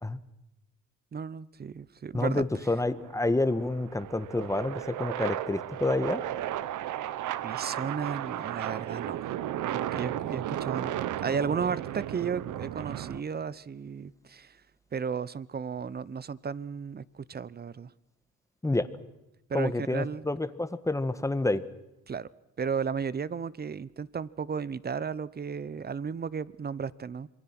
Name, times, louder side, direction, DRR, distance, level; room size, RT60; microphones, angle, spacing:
voice 1, 1.1-2.4 7.4-9.2 9.7-14.6 14.9-17.9 19.5-20.2 22.1-22.3 22.6-27.3, right 6 dB, 30° right, 19 dB, 0.8 m, -34 dB
voice 2, 2.1-6.2 18.6-18.9 19.5-21.6, left 2 dB, 10° left, 12 dB, 1.4 m, -28 dB
sound 1, 2.8-13.2, right 12 dB, 80° right, 0.9 m, -34 dB
27.0 x 23.0 x 6.1 m, 0.91 s
cardioid pair, 90°, 30 cm